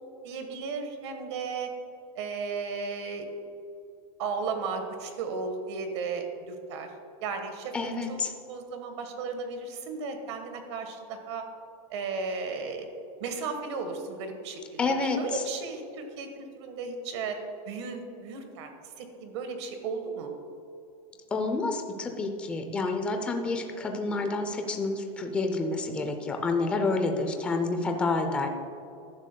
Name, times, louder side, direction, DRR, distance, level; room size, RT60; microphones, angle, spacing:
voice 1, 0.2-1.7 2.1-3.3 4.2-6.9 7.2-7.7 8.1-11.4 11.9-12.9 13.2-17.4 17.7-18.7 19.0-20.3, right 4 dB, 50° right, 6 dB, 1.4 m, -35 dB
voice 2, 7.7-8.3 14.8-15.4 21.3-28.5, left 3 dB, 5° left, 4 dB, 0.4 m, -29 dB
15.5 x 11.0 x 2.2 m, 2.7 s
supercardioid pair, 180°, 18 cm